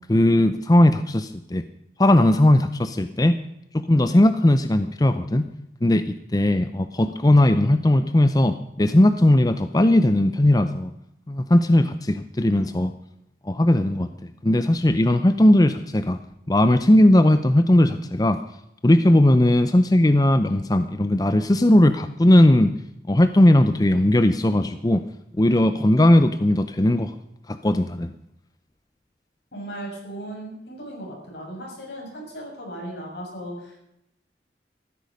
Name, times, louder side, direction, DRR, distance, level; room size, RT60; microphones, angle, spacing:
voice 1, 0.1-1.6 2.0-3.4 3.7-5.5 5.8-10.9 11.3-12.9 13.4-16.2 16.5-18.4 18.8-22.7 23.1-25.0 25.4-27.1 27.5-28.1, left 1 dB, 20° left, 10 dB, 0.6 m, -18 dB
voice 2, 29.5-33.8, right 1 dB, 75° left, -1 dB, 7.0 m, -36 dB
14.5 x 13.0 x 5.3 m, 0.83 s
head